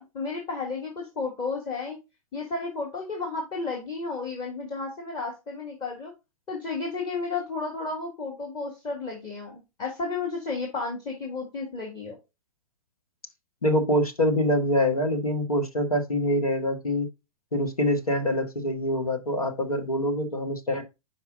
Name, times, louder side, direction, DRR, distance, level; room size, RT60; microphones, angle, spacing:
voice 1, 0.0-2.0 2.3-6.1 6.5-12.1, left 4 dB, 20° left, 1.8 m, -32 dB
voice 2, 13.6-17.1 17.5-20.8, equal, 85° left, 1.3 m, -25 dB
5.8 x 4.9 x 3.6 m
figure-of-eight pair, 105°, 18 cm